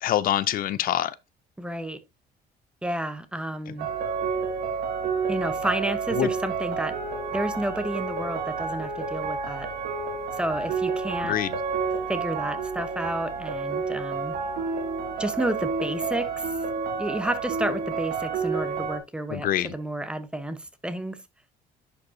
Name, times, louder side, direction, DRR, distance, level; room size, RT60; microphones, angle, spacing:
voice 1, 0.0-1.2 6.2-6.3 11.2-11.5 19.3-19.7, left 12 dB, 60° left, 0.4 m, -25 dB
voice 2, 1.6-2.0 2.8-3.9 5.3-7.0 7.3-9.7 10.4-11.3 12.1-14.3 15.2-16.5 17.0-21.2, right 1 dB, 5° right, 0.9 m, -31 dB
sound 1, 3.8-19.0, right 5 dB, 70° right, 2.2 m, -30 dB
10.5 x 5.2 x 2.6 m
cardioid pair, 110°, 17 cm